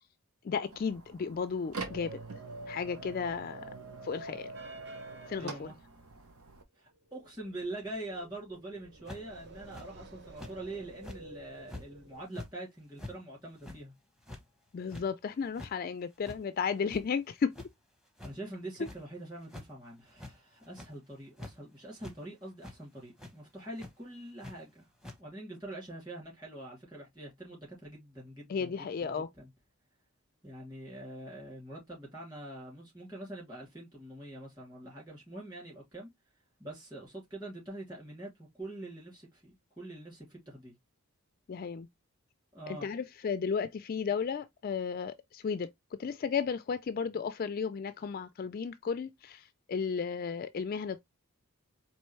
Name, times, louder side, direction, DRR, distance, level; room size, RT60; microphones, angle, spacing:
voice 1, 0.4-2.2 2.7-3.6 4.0-4.5 5.3-5.7 14.7-17.5 18.8-18.9 28.5-29.3 41.5-41.9 42.7-45.7 46.0-51.0, left 6 dB, 40° left, 0.3 m, -34 dB
sound 1, 0.6-6.6, right 3 dB, 75° right, 1.0 m, -44 dB
sound 2, 4.5-5.8 6.9-12.2, right 3 dB, 50° right, 0.7 m, -52 dB
voice 2, 5.4-5.7 6.8-13.9 18.2-24.8 25.2-28.7 29.0-29.5 30.4-36.1 36.6-40.7 42.5-42.9, right 1 dB, 20° right, 2.6 m, -44 dB
sound 3, 9.1-9.4 9.7-9.9 10.4-10.5 11.0-11.2 11.7-11.8 12.2-12.5 13.0-13.2 13.6-13.8 14.2-14.4 14.9-15.1 15.4-15.7 16.2-16.4 16.8-17.3 17.5-17.7 18.2-18.3 18.8-19.0 19.4-19.7 20.1-20.4 20.6-20.9 21.4-21.5 22.0-22.1 22.6-22.8 23.2-23.3 23.8-23.9 24.4-24.5 25.0-25.2, left 1 dB, 5° right, 0.9 m, -45 dB
4.4 x 3.0 x 3.1 m
head